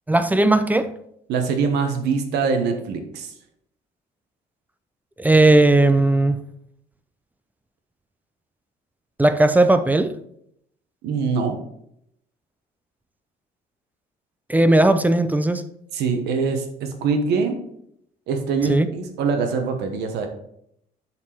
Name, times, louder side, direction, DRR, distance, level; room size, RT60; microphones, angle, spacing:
voice 1, 0.1-0.9 5.2-6.4 9.2-10.1 14.5-15.6 18.7-18.9, right 2 dB, 10° right, 11 dB, 0.5 m, -17 dB
voice 2, 1.3-3.3 11.0-11.5 15.9-17.5 18.3-20.3, right 5 dB, 80° right, 5 dB, 1.2 m, -23 dB
7.2 x 4.5 x 4.5 m, 0.73 s
cardioid pair, 110°, 17 cm